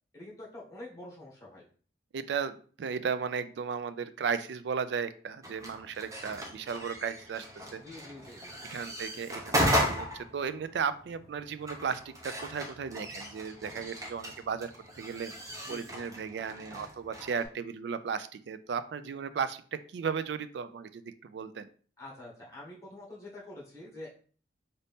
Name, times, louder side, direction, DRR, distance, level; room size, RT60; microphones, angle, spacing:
voice 1, 0.1-1.7 7.8-8.6 15.6-16.0 22.0-24.1, left 1 dB, 20° left, -4 dB, 1.6 m, -46 dB
voice 2, 2.1-7.5 7.7-7.8 8.7-15.3 15.7-21.7, right 6 dB, 70° right, 13 dB, 0.3 m, -35 dB
sound 1, 5.4-17.5, equal, 20° right, 0.7 m, -36 dB
4.0 x 2.6 x 3.5 m, 0.43 s
head